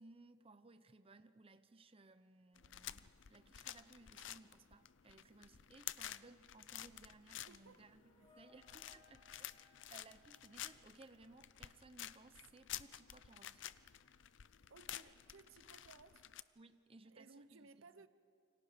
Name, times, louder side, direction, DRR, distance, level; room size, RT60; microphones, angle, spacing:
voice 1, 0.0-13.6 16.6-18.1, right 3 dB, 30° right, 0.8 m, -62 dB
sound 1, 2.6-16.4, left 12 dB, 65° left, 0.6 m, -51 dB
voice 2, 7.4-7.8 14.7-16.3 17.1-18.1, right 4 dB, 85° right, 0.8 m, -61 dB
sound 2, 7.5-11.4, left 3 dB, 30° left, 2.5 m, -70 dB
28.5 x 25.0 x 5.2 m
head